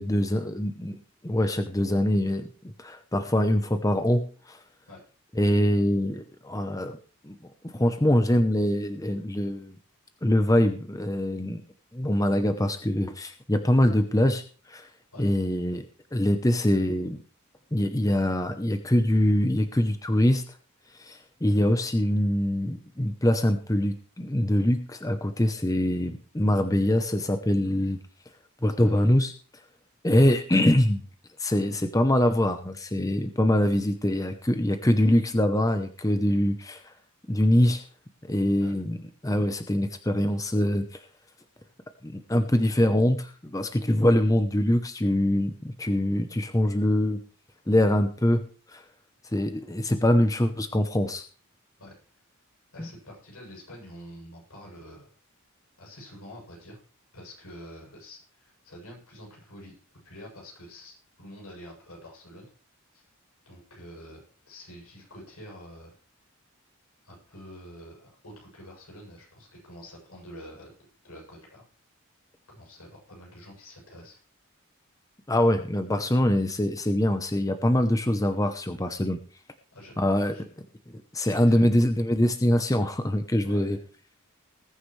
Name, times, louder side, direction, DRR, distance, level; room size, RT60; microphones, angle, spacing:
voice 1, 0.0-2.5 2.8-4.6 5.4-7.0 7.2-7.3 7.7-9.8 10.2-11.6 11.9-14.4 14.7-14.9 15.2-15.8 16.1-17.2 17.7-20.4 21.0-28.0 28.6-29.3 30.0-31.0 31.4-36.8 37.3-37.8 38.3-39.0 39.2-40.8 42.0-47.2 47.7-48.4 48.7-48.8 49.3-51.2 52.8-52.9 75.3-79.2 80.0-80.5 81.1-83.8, left 1 dB, 15° left, 8 dB, 0.8 m, -24 dB
voice 2, 28.8-29.1 38.6-38.7 51.8-51.9 52.7-55.1 55.8-56.8 57.1-59.7 60.0-62.5 62.9-63.0 63.5-65.9 67.0-70.7 71.0-71.6 72.5-74.2 79.7-80.0 80.3-80.4 81.2-81.8 83.4-83.8, equal, 85° left, -1 dB, 7.9 m, -47 dB
20.0 x 9.8 x 3.3 m, 0.40 s
head